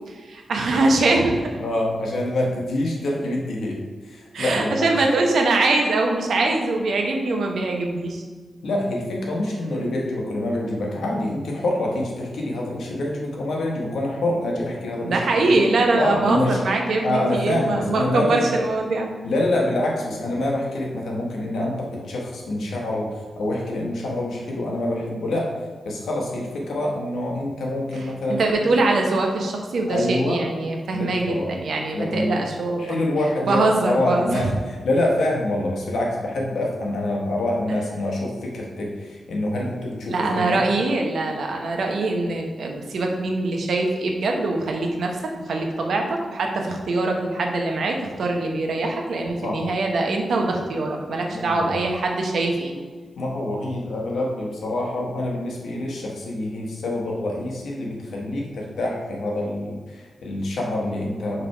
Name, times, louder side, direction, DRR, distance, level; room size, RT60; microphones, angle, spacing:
voice 1, 0.3-1.6 4.3-8.2 15.0-19.1 28.4-33.0 33.5-34.2 40.1-45.1 45.5-52.7, right 2 dB, 75° right, 2 dB, 0.9 m, -23 dB
voice 2, 1.6-4.9 8.6-15.5 16.0-16.6 17.0-18.5 19.2-25.5 25.8-28.7 29.9-30.4 30.9-31.5 31.9-32.5 32.8-40.6 49.4-49.6 51.3-51.7 53.2-61.5, left 1 dB, 90° left, -2 dB, 1.3 m, -26 dB
5.9 x 3.4 x 4.6 m, 1.4 s
wide cardioid pair, 115°, 0 cm